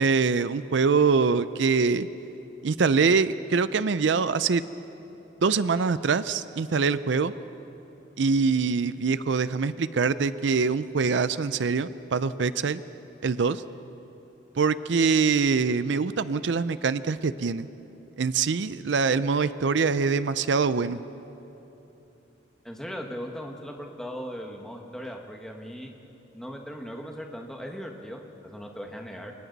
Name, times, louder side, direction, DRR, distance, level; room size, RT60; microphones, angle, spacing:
voice 1, 0.0-2.1 2.6-4.6 5.4-7.3 8.2-12.8 13.2-13.6 14.6-17.7 18.2-21.0, right 5 dB, 75° right, 14 dB, 0.5 m, -24 dB
voice 2, 22.6-25.9 26.3-29.3, equal, 5° left, 1 dB, 1.5 m, -38 dB
29.0 x 23.5 x 4.1 m, 3.0 s
head